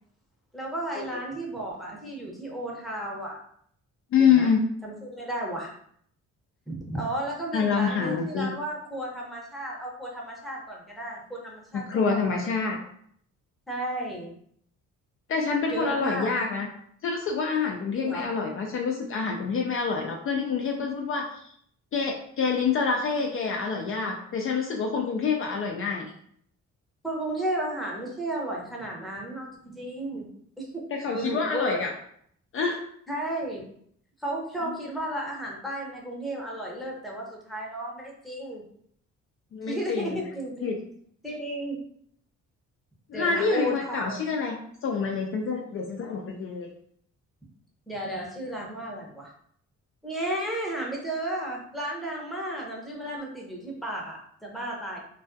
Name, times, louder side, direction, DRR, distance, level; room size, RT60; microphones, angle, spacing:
voice 1, 0.5-3.4 4.1-4.5 4.8-5.7 6.7-12.4 13.7-14.3 15.7-16.3 18.0-18.3 27.0-30.3 30.6-30.8 31.1-31.8 33.1-33.7 34.2-38.6 39.6-40.8 41.2-41.8 43.1-44.2 47.9-49.3 50.0-55.0, right 1 dB, ahead, -3 dB, 0.7 m, -33 dB
voice 2, 4.1-4.6 7.5-8.5 11.7-12.8 15.3-16.7 17.0-21.5 21.9-26.1 30.9-31.9 32.5-32.8 34.6-34.7 39.5-40.2 40.6-40.8 43.1-44.6 44.8-46.7, left 5 dB, 45° left, 1 dB, 0.4 m, -27 dB
2.3 x 2.2 x 2.5 m, 0.65 s
cardioid pair, 90°, 30 cm